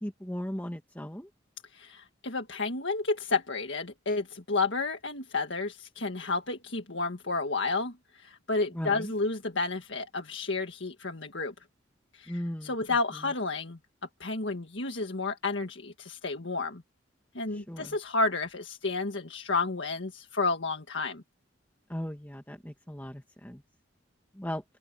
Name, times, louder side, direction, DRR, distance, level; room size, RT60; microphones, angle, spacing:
voice 1, 0.0-1.3 8.7-9.1 12.3-12.7 17.5-18.0 21.9-23.6 24.3-24.6, equal, 10° left, 1.6 m, -37 dB
voice 2, 1.7-11.5 12.1-13.8 14.2-16.8 17.3-21.2, left 3 dB, 70° left, 1.8 m, -31 dB
open air
head